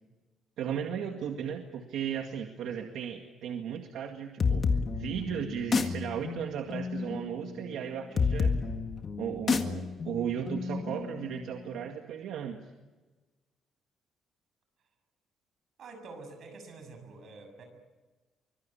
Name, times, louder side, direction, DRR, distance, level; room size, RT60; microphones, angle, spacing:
voice 1, 0.6-4.6 4.9-8.6 9.2-12.6, right 8 dB, 75° right, 4 dB, 2.0 m, -36 dB
sound 1, 4.4-11.8, left 5 dB, 30° left, 1.8 m, -31 dB
voice 2, 15.8-17.6, right 3 dB, 50° right, 6 dB, 6.9 m, -47 dB
25.0 x 22.5 x 8.8 m, 1.2 s
cardioid pair, 170°, 0 cm